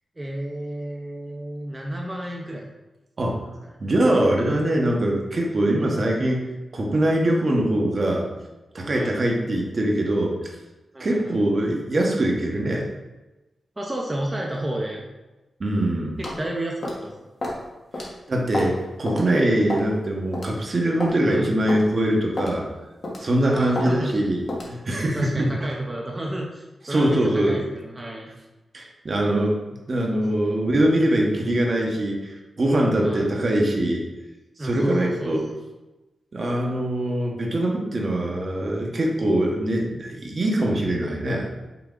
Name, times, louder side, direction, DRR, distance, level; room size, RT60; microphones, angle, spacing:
voice 1, 0.2-2.7 3.6-3.7 8.9-9.2 10.9-11.4 13.8-15.0 16.2-17.1 21.3-21.5 23.4-24.2 25.1-28.3 33.0-33.4 34.6-35.4, right 1 dB, 25° right, -2 dB, 0.7 m, -31 dB
voice 2, 3.2-3.5 3.8-8.3 8.7-10.4 11.0-12.8 15.6-16.2 18.0-22.6 23.2-25.5 26.9-27.6 28.7-29.6 29.9-34.0 34.6-35.4 36.3-41.5, right 1 dB, 50° right, -1 dB, 1.0 m, -23 dB
sound 1, 16.2-16.4 16.8-17.0 17.4-17.6 17.9-18.1 18.5-18.8 19.1-19.2 19.7-19.9 20.3-20.5 21.0-21.2 21.7-21.8 22.4-22.6 23.0-23.3 23.8-23.9 24.5-24.7, left 1 dB, 55° left, 1.2 m, -29 dB
5.8 x 2.3 x 3.7 m, 1.1 s
cardioid pair, 55°, 0 cm